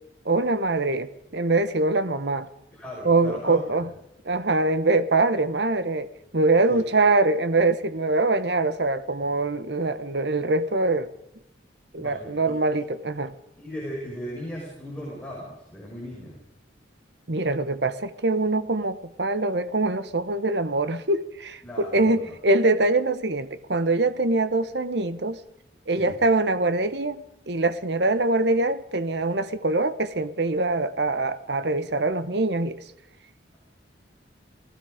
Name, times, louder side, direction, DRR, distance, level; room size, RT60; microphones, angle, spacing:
voice 1, 0.2-2.5 3.0-3.9 4.2-6.1 6.3-11.1 11.9-13.3 17.3-25.4 25.9-32.8, right 2 dB, 65° right, 13 dB, 1.1 m, -23 dB
voice 2, 2.7-3.9 6.7-6.8 12.0-12.6 13.6-16.4 21.6-22.4 25.9-26.2, equal, 5° left, -5 dB, 5.6 m, -37 dB
28.0 x 18.5 x 5.1 m, 0.86 s
head